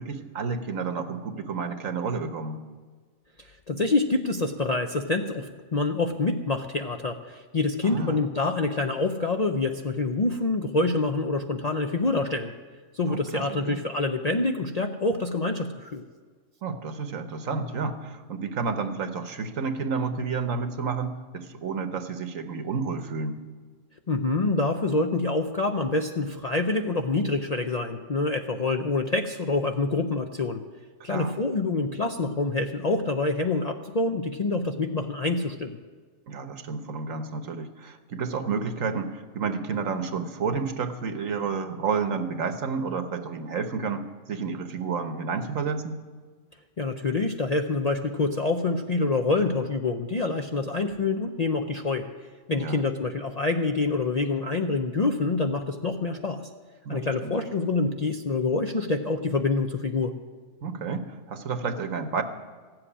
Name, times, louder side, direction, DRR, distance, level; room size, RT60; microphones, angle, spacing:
voice 1, 0.0-2.6 7.8-8.2 13.1-13.8 16.6-23.4 31.1-31.4 36.3-46.0 52.5-52.8 56.8-57.3 60.6-62.2, right 5 dB, 90° right, 9 dB, 1.5 m, -30 dB
voice 2, 3.4-12.5 12.9-16.0 24.1-30.6 31.0-35.8 46.8-52.1 52.5-56.5 56.9-60.1, left 3 dB, 40° left, 4 dB, 0.7 m, -26 dB
15.0 x 7.8 x 9.9 m, 1.5 s
omnidirectional pair, 1.3 m